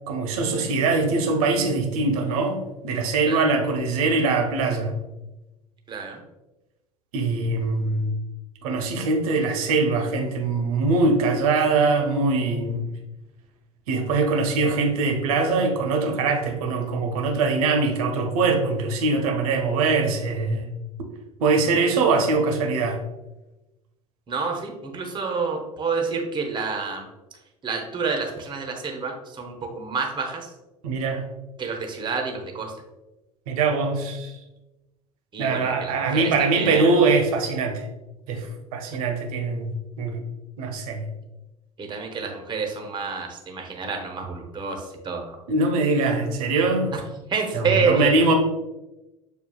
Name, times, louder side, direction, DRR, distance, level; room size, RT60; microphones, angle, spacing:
voice 1, 0.1-5.0 7.1-8.1 8.6-12.9 13.9-20.7 21.4-23.0 30.8-31.2 33.5-34.3 35.4-37.9 38.3-40.2 40.6-41.1 45.5-46.9 47.5-48.3, right 3 dB, 65° right, 3 dB, 0.8 m, -22 dB
voice 2, 5.9-6.2 24.3-27.1 27.6-30.5 31.6-32.7 35.3-36.9 41.8-45.4 46.9-47.0 47.3-48.1, right 4 dB, 25° right, 3 dB, 0.8 m, -28 dB
6.8 x 2.3 x 2.3 m, 1.0 s
figure-of-eight pair, 75°, 20 cm